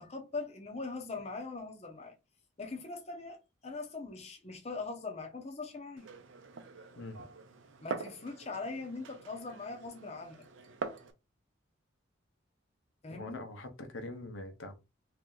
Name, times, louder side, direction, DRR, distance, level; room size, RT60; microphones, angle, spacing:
voice 1, 0.0-2.1 2.6-6.1 7.8-10.4 13.0-13.4, left 3 dB, 35° left, 0.7 m, -41 dB
Glass, 6.0-11.1, right 4 dB, 75° right, 0.6 m, -44 dB
voice 2, 13.1-14.7, left 2 dB, 80° left, 0.8 m, -43 dB
3.2 x 2.9 x 3.8 m
head